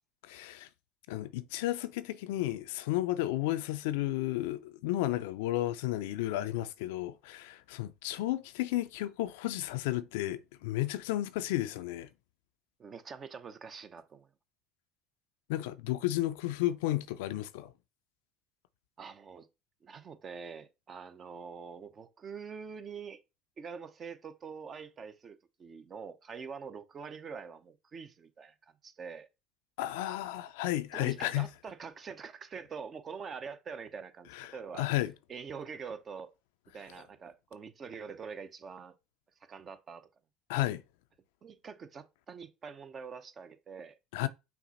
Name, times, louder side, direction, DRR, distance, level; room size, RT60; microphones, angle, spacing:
voice 1, 0.2-0.7 1.1-12.1 15.5-17.7 29.8-31.5 34.3-35.1 40.5-40.8 44.1-44.3, left 15 dB, 80° left, 0.4 m, -33 dB
voice 2, 12.8-14.3 19.0-19.5 19.8-23.2 23.6-29.3 30.9-34.9 35.3-36.3 36.7-39.0 39.5-40.1 41.4-44.0, right 6 dB, 40° right, 0.7 m, -45 dB
5.9 x 2.1 x 4.0 m
hypercardioid pair, 80°, 0 cm